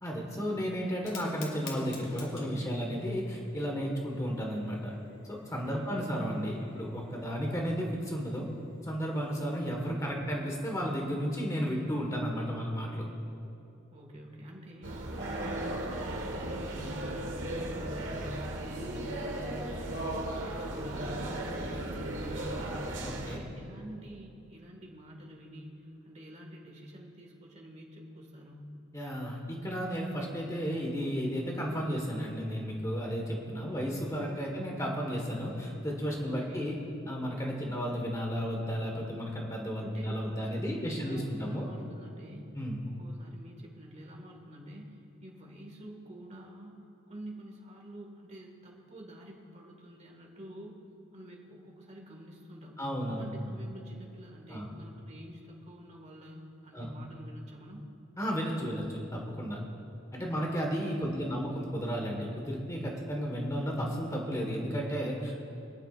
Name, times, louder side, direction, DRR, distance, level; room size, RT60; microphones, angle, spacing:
voice 1, 0.0-4.9 5.3-8.5 8.8-13.0 23.0-23.4 28.9-36.8 37.1-41.7 42.5-42.8 52.8-53.3 54.5-54.7 56.7-56.9 58.2-59.6 60.1-65.3, equal, 15° left, -1 dB, 1.5 m, -33 dB
Fire, 0.9-9.8, left 4 dB, 75° left, 2.4 m, -53 dB
voice 2, 5.7-6.4 13.9-22.8 23.2-28.7 34.3-34.6 36.2-36.8 39.8-42.5 42.9-46.7 47.1-50.8 51.1-57.8 61.0-61.5, equal, 35° right, 0 dB, 1.8 m, -48 dB
sound 1, 14.8-23.4, right 1 dB, 70° right, 1.5 m, -36 dB
26.0 x 9.3 x 2.5 m, 2.8 s
head